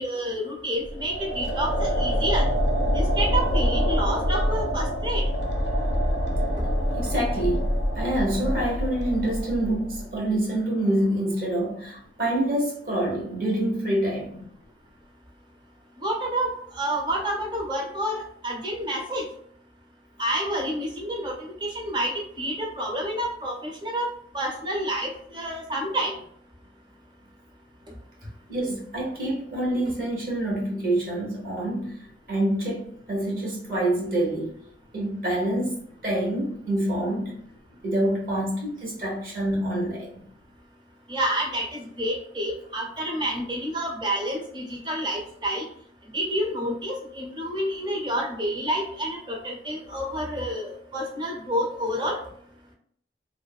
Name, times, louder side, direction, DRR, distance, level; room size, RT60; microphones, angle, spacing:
voice 1, 0.0-2.5 2.9-5.2 16.0-19.2 20.2-21.3 21.6-26.1 41.1-45.6 46.1-52.2, right 1 dB, 25° right, 0.5 m, -29 dB
sound 1, 0.8-10.1, equal, 65° left, 0.5 m, -25 dB
voice 2, 6.9-14.5 28.5-32.0 32.3-34.6 34.9-35.7 36.0-37.3 37.8-40.1, right 1 dB, 55° right, 0.9 m, -26 dB
2.5 x 2.3 x 2.3 m
head